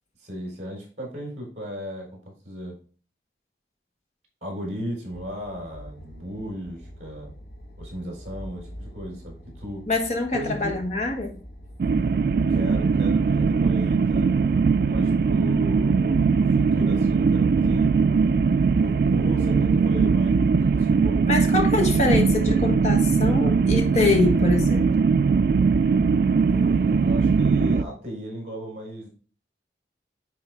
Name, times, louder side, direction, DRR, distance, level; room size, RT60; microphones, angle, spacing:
voice 1, 0.2-2.8 4.4-7.3 7.8-9.9 10.3-10.8 12.5-14.3 14.9-17.9 18.8-21.2 26.5-29.1, equal, 40° right, -1 dB, 4.0 m, -36 dB
sound 1, 5.1-20.1, equal, 60° left, 1.3 m, -43 dB
voice 2, 9.9-11.3 21.3-25.0, left 2 dB, 40° left, 3 dB, 1.4 m, -24 dB
sound 2, 11.8-27.8, right 5 dB, 55° right, 0.3 m, -20 dB
10.0 x 3.9 x 3.5 m, 0.39 s
head